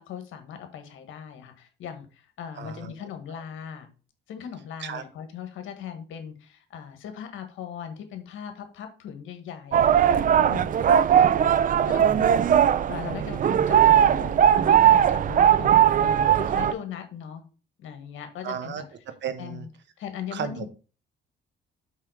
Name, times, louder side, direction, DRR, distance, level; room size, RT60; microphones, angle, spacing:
voice 1, 0.0-3.9 4.3-11.2 11.8-12.3 12.9-17.4 17.8-18.8 19.4-19.7 20.0-20.7, left 8 dB, 85° left, 7 dB, 1.6 m, -39 dB
voice 2, 2.6-2.9 4.8-5.0 11.9-12.4 18.4-19.7 20.3-20.7, right 7 dB, 65° right, 10 dB, 1.1 m, -35 dB
sound 1, 9.7-16.7, right 9 dB, 45° right, 0.4 m, -19 dB
5.6 x 4.8 x 5.0 m, 0.35 s
cardioid pair, 90°, 20 cm